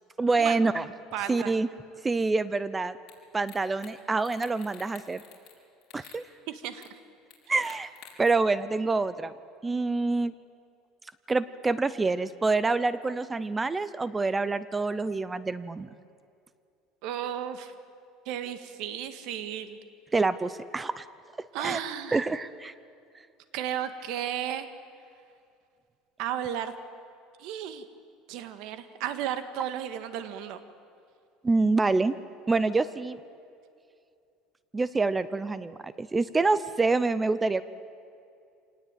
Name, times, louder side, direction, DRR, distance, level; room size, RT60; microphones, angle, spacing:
voice 1, 0.2-0.9 1.3-1.7 2.0-3.0 3.3-5.2 5.9-6.2 7.5-7.9 8.2-9.3 9.6-10.3 11.3-15.9 20.1-21.0 21.6-21.8 22.1-22.7 31.4-32.1 32.5-33.2 34.7-37.6, right 3 dB, 15° right, 16 dB, 0.6 m, -26 dB
voice 2, 1.1-1.5 6.0-6.2 6.5-6.9 17.0-17.7 18.3-19.8 21.5-22.2 23.5-24.7 26.2-26.7 27.4-27.8 28.3-30.6, right 10 dB, 65° right, 10 dB, 1.8 m, -34 dB
sound 1, 3.1-3.2 3.5-3.9 4.2-5.6 5.8-6.2 6.8-6.9 7.3-8.3, left 11 dB, 50° left, 5.4 m, -50 dB
26.0 x 18.5 x 9.2 m, 2.5 s
cardioid pair, 140°, 0 cm